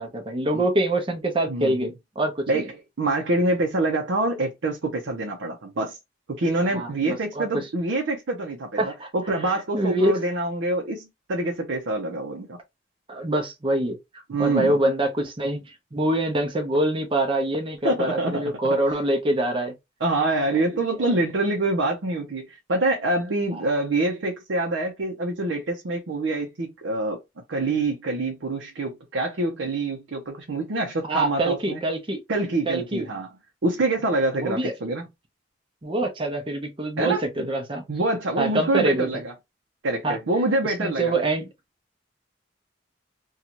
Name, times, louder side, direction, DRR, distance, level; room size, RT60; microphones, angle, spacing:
voice 1, 0.0-2.7 6.7-7.6 8.8-9.1 9.4-10.2 13.1-14.0 14.4-15.6 15.9-19.7 31.1-32.2 32.7-33.1 34.4-34.7 35.8-37.8 38.4-39.1 40.0-40.2 40.6-41.5, right 1 dB, 30° right, 0.7 m, -25 dB
voice 2, 1.5-1.9 2.5-6.0 6.3-8.8 9.1-12.6 14.3-14.8 17.8-18.5 20.0-27.2 27.5-31.8 32.3-33.3 33.6-35.0 37.0-37.5 37.9-39.3 39.8-41.1, right 2 dB, 75° right, 0.6 m, -26 dB
2.6 x 2.3 x 2.9 m
head